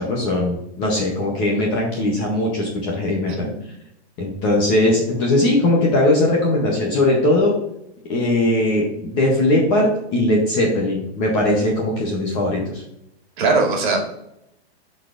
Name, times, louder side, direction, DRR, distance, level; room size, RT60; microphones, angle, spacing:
voice 1, 0.0-3.5 4.2-7.5 8.1-12.8, left 1 dB, 15° left, -2 dB, 0.6 m, -19 dB
voice 2, 13.4-14.1, right 3 dB, 50° right, 1 dB, 2.1 m, -20 dB
11.5 x 4.1 x 2.4 m, 0.81 s
supercardioid pair, 175°, 32 cm